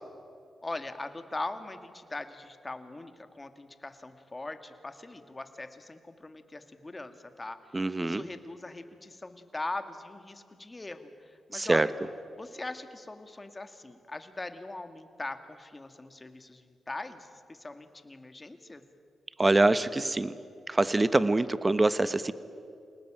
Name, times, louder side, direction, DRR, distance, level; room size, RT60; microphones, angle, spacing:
voice 1, 0.6-11.9 12.4-18.8, left 2 dB, 25° left, 9 dB, 2.3 m, -41 dB
voice 2, 7.7-8.2 11.5-11.9 19.4-20.3 20.7-22.3, right 2 dB, 25° right, 14 dB, 1.2 m, -24 dB
27.5 x 19.0 x 9.0 m, 2.5 s
cardioid pair, 55°, 0 cm